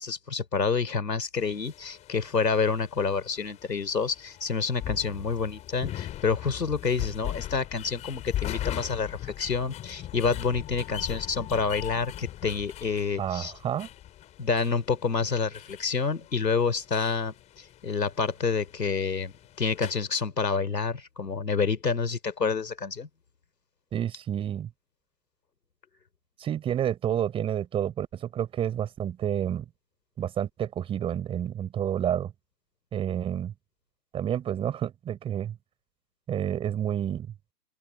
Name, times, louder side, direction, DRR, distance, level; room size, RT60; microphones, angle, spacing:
voice 1, 0.0-13.5 14.4-17.3 17.8-23.1, left 5 dB, 80° left, 3.6 m, -28 dB
sound 1, 1.4-19.9, left 13 dB, 15° left, 5.2 m, -40 dB
voice 2, 13.2-13.9 23.9-24.7 26.4-29.7 30.2-32.3 32.9-33.5 34.1-35.6 36.3-37.3, right 10 dB, 10° right, 4.5 m, -29 dB
open air
hypercardioid pair, 150°, 48 cm